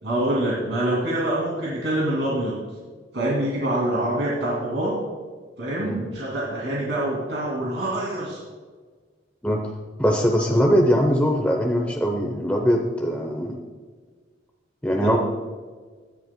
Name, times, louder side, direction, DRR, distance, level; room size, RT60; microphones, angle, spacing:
voice 1, 0.0-2.6 3.1-5.0 5.6-8.4 14.8-15.2, right 1 dB, 85° right, -5 dB, 2.5 m, -25 dB
voice 2, 10.0-13.6 14.8-15.2, equal, 10° left, 1 dB, 0.7 m, -21 dB
17.0 x 10.5 x 2.2 m, 1.5 s
head